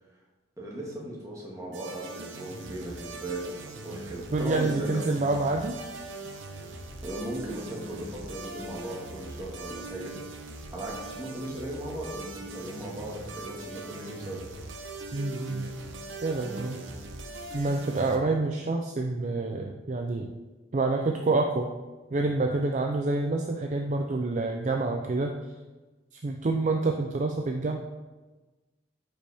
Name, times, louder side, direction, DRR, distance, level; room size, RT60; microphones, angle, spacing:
voice 1, 0.6-5.1 7.0-10.4 10.7-14.4, right 1 dB, 15° right, -3 dB, 1.5 m, -37 dB
sound 1, 1.7-18.2, right 2 dB, 85° right, 1.0 m, -41 dB
voice 2, 4.3-5.8 15.1-15.7 16.2-16.8 17.5-20.3 20.7-21.7 22.1-25.4 26.1-27.8, right 3 dB, 40° right, 3 dB, 0.4 m, -27 dB
8.8 x 5.2 x 3.5 m, 1.2 s
head